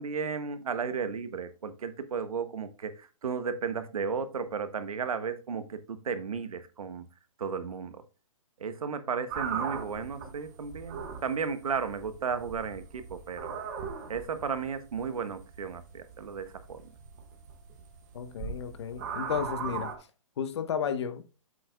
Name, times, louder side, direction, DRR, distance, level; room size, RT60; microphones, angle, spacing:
voice 1, 0.0-7.0 7.4-8.0 8.6-13.6 14.1-16.8, right 6 dB, 85° right, 1.4 m, -34 dB
sound 1, 9.3-19.9, right 6 dB, 30° right, 1.6 m, -39 dB
voice 2, 18.1-19.9 20.4-21.2, left 8 dB, 50° left, 1.2 m, -33 dB
8.3 x 7.6 x 2.3 m
hypercardioid pair, 165°, 18 cm